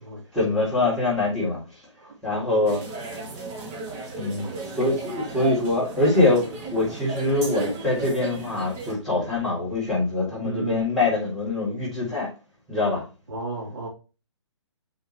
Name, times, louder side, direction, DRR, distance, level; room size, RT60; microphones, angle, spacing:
voice 1, 0.3-1.6 2.2-2.8 4.2-12.3 12.7-13.0, left 2 dB, ahead, 3.9 m, -24 dB
sound 1, 2.7-8.9, right 3 dB, 20° right, 2.0 m, -34 dB
voice 2, 10.4-10.8 13.3-13.9, right 3 dB, 55° right, 3.9 m, -32 dB
7.2 x 5.6 x 3.1 m
figure-of-eight pair, 135°, 15 cm